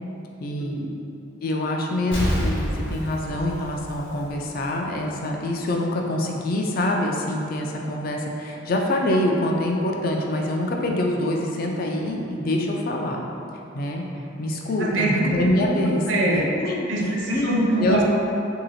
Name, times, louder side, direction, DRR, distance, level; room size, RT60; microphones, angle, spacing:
voice 1, 0.4-0.9 1.4-13.3 13.7-14.0 14.4-16.0 16.3-18.0, left 1 dB, 45° left, 0 dB, 0.4 m, -25 dB
Explosion, 2.1-4.7 5.1-5.2, equal, 70° left, 1.0 m, -28 dB
voice 2, 14.8-15.3 15.7-16.5 16.9-18.2, right 1 dB, 65° right, -2 dB, 0.6 m, -24 dB
3.0 x 2.8 x 4.0 m, 2.7 s
head